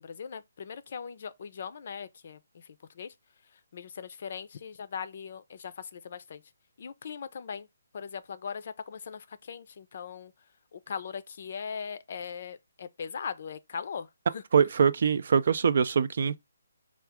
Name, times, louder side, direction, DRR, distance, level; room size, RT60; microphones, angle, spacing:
voice 1, 0.0-3.1 3.5-6.4 6.8-7.7 7.9-10.3 10.7-14.4, left 6 dB, 50° left, 0.5 m, -40 dB
voice 2, 14.5-16.4, right 6 dB, 55° right, 0.4 m, -23 dB
4.5 x 2.4 x 3.5 m
hypercardioid pair, 160°, 0 cm